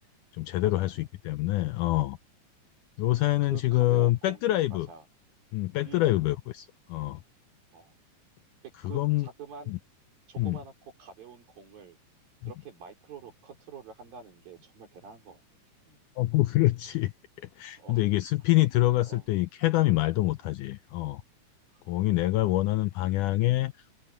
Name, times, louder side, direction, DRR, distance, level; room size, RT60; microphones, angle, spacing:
voice 1, 0.3-2.2 3.0-4.9 5.5-7.2 8.9-9.3 9.7-9.8 10.4-10.6 12.4-12.5 16.2-17.1 17.4-21.2 21.9-23.7, left 17 dB, 85° left, 1.8 m, -26 dB
voice 2, 3.5-5.1 5.8-6.1 7.7-7.9 8.8-9.7 10.3-12.0 12.5-15.4 15.9-16.0 17.8-18.0 19.1-19.3 21.7-21.8, right 6 dB, 75° right, 6.1 m, -47 dB
omnidirectional pair, 4.2 m